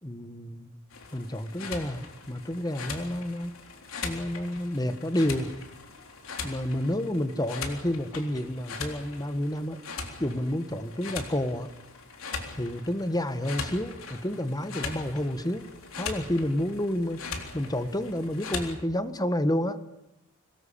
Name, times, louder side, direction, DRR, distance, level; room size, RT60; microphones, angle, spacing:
voice 1, 0.0-0.7 1.1-3.6 4.0-5.5 6.4-9.8 10.2-11.7 12.6-15.7 16.0-17.2 17.5-19.8, left 1 dB, 20° left, 11 dB, 1.5 m, -30 dB
sound 1, 0.9-18.7, left 4 dB, 70° left, 3.8 m, -40 dB
25.0 x 20.0 x 8.6 m, 0.82 s
head